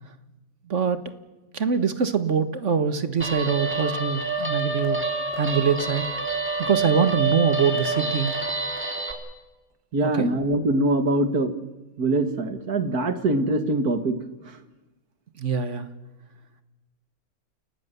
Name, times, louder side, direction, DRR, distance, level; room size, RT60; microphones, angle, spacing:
voice 1, 0.7-1.0 1.5-5.0 5.4-6.1 6.6-8.3 10.1-10.3 15.4-15.9, right 6 dB, 55° right, 11 dB, 1.6 m, -23 dB
Guitar, 3.2-9.1, right 3 dB, 10° right, 3.0 m, -27 dB
voice 2, 9.9-11.5 12.0-14.2, right 2 dB, 85° right, 9 dB, 2.4 m, -23 dB
29.5 x 18.5 x 6.9 m, 1.1 s
omnidirectional pair, 1.6 m